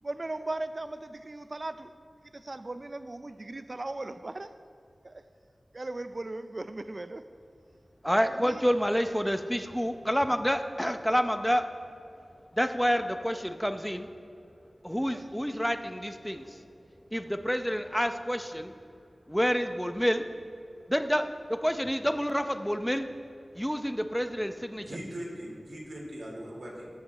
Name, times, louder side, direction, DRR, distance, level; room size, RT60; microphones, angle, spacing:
voice 1, 0.0-1.9 2.3-4.5 5.0-5.2 5.7-7.3 8.3-8.6 15.1-15.3 15.5-15.6, right 2 dB, 50° right, 0.4 m, -38 dB
voice 2, 8.0-11.7 12.5-14.1 14.8-16.6 17.1-18.7 19.3-20.2 20.9-23.1 23.5-25.0, equal, 5° left, 0.7 m, -28 dB
voice 3, 24.8-26.9, equal, 85° right, 2.9 m, -40 dB
13.5 x 7.8 x 4.3 m
wide cardioid pair, 45°, 0 cm